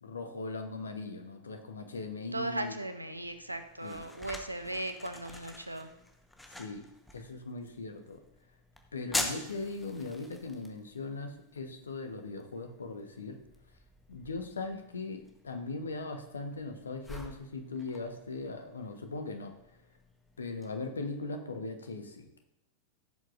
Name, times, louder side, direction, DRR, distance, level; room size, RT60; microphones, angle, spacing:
voice 1, 0.0-2.7 3.8-3.9 6.6-6.8 7.1-8.2 8.9-13.4 14.1-19.5 20.4-22.3, left 3 dB, 70° left, 6 dB, 1.2 m, -39 dB
voice 2, 2.3-5.9, right 1 dB, 85° right, 9 dB, 0.7 m, -37 dB
sound 1, 3.1-20.7, left 1 dB, 5° left, 1.2 m, -45 dB
14.5 x 7.7 x 2.6 m, 0.91 s
figure-of-eight pair, 90°, 0 cm